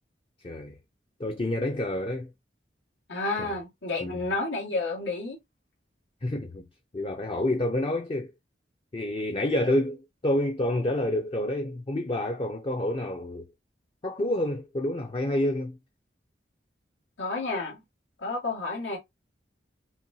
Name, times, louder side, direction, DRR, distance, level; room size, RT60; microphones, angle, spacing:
voice 1, 0.4-0.7 1.2-2.3 3.4-3.5 4.0-4.1 6.2-6.7 6.9-8.3 8.9-13.5 14.0-15.8, left 1 dB, 30° left, 0.5 m, -28 dB
voice 2, 3.1-5.4 17.2-17.8 18.2-19.0, left 3 dB, 90° left, 1.7 m, -30 dB
5.7 x 2.2 x 2.7 m
head